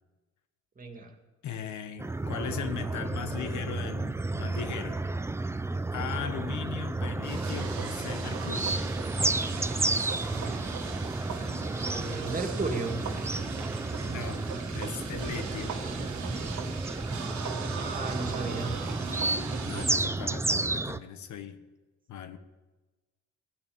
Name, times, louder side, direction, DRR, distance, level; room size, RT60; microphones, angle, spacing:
voice 1, 0.8-1.1 11.7-13.0 17.6-18.7, right 3 dB, 30° right, 3 dB, 2.1 m, -35 dB
voice 2, 1.4-5.0 5.9-8.9 14.1-15.8 19.6-21.6 22.1-22.4, left 8 dB, 80° left, 9 dB, 1.2 m, -38 dB
sound 1, 2.0-21.0, right 2 dB, 10° right, 0.4 m, -32 dB
sound 2, 7.2-19.9, right 6 dB, 80° right, 1.7 m, -39 dB
17.0 x 7.1 x 8.6 m, 1.2 s
cardioid pair, 95°, 29 cm